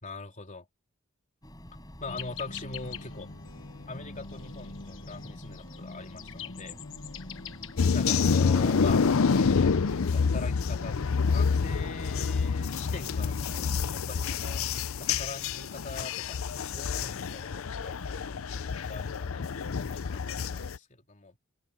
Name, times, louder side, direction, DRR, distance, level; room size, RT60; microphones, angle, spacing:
voice 1, 0.0-0.7 2.0-3.3 3.9-6.8 7.9-9.0 9.3-14.6 15.0-21.4, left 3 dB, 40° left, 3.7 m, -43 dB
sound 1, 1.4-13.9, equal, 20° left, 5.4 m, -47 dB
sound 2, 2.1-10.2, left 5 dB, 65° left, 1.3 m, -44 dB
sound 3, 7.8-20.8, left 5 dB, 80° left, 0.6 m, -27 dB
head